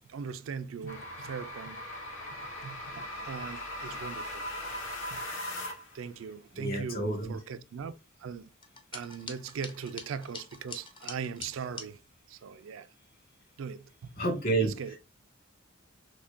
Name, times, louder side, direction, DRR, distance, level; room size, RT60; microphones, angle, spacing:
voice 1, 0.0-1.8 2.6-4.4 5.1-5.4 5.9-7.9 8.2-8.5 8.9-12.0 12.3-12.9 13.6-14.1 14.6-15.0, right 6 dB, 70° right, 0.4 m, -40 dB
sound 1, 0.9-6.0, left 1 dB, 70° left, 1.5 m, -39 dB
voice 2, 6.6-7.4 14.2-14.7, right 2 dB, 50° left, 1.7 m, -29 dB
sound 2, 8.6-11.9, left 4 dB, 25° left, 0.5 m, -45 dB
5.9 x 2.2 x 2.5 m
head